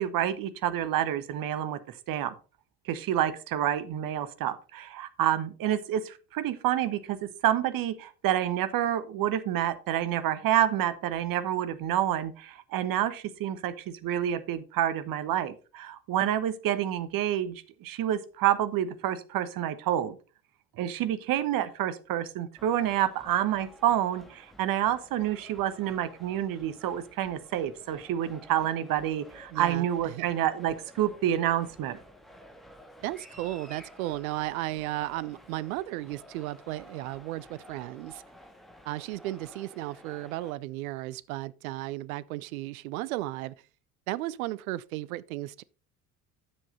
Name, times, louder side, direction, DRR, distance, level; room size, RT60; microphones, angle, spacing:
voice 1, 0.0-2.3 2.8-20.2 20.8-32.0, right 11 dB, 50° right, 1.2 m, -28 dB
sound 1, 22.6-40.5, equal, ahead, 2.8 m, -52 dB
voice 2, 29.5-30.3 33.0-38.2 38.8-43.5 44.1-45.6, right 17 dB, 70° right, 0.6 m, -35 dB
9.8 x 7.6 x 3.9 m
figure-of-eight pair, 60°, 44 cm